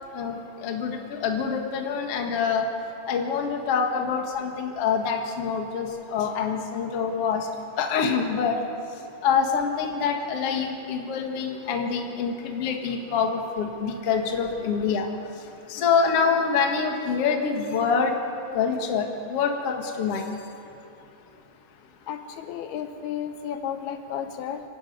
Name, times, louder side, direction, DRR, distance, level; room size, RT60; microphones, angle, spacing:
voice 1, 0.1-2.7 3.0-7.5 7.8-8.6 9.2-18.2 18.5-20.4, left 6 dB, 50° left, 2 dB, 2.0 m, -26 dB
voice 2, 22.1-24.6, left 9 dB, 75° left, 7 dB, 2.6 m, -33 dB
25.5 x 12.0 x 9.4 m, 2.8 s
omnidirectional pair, 4.7 m